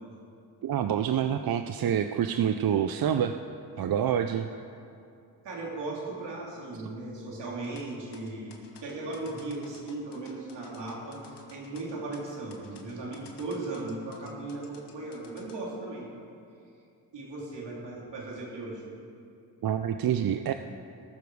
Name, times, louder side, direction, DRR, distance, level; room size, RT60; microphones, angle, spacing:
voice 1, 0.6-3.3 3.8-4.5 19.6-20.5, right 9 dB, 55° right, 8 dB, 0.6 m, -27 dB
voice 2, 5.4-16.1 17.1-18.8, right 2 dB, 80° right, -3 dB, 3.0 m, -37 dB
sound 1, 7.6-15.6, left 5 dB, 75° left, 1.5 m, -54 dB
18.5 x 6.9 x 4.8 m, 2.5 s
cardioid pair, 55°, 42 cm